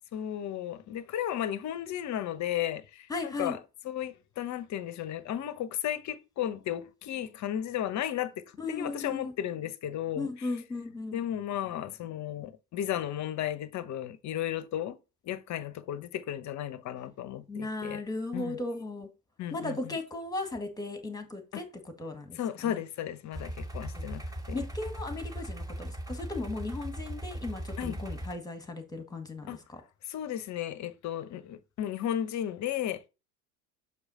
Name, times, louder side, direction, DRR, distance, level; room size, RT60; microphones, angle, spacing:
voice 1, 0.1-3.6 3.8-10.5 11.1-15.0 15.2-18.0 18.3-18.6 19.4-20.0 21.5-21.6 22.3-24.6 27.8-28.0 29.5-29.6 30.1-33.0, left 11 dB, 35° left, 0.9 m, -34 dB
voice 2, 3.1-3.6 8.6-9.3 10.2-11.2 17.5-19.1 19.5-22.4 22.6-22.8 24.0-24.1 24.5-29.8, left 3 dB, 10° left, 1.8 m, -36 dB
sound 1, 23.3-28.3, right 1 dB, 10° right, 1.2 m, -38 dB
7.1 x 4.9 x 4.3 m
hypercardioid pair, 80°, 48 cm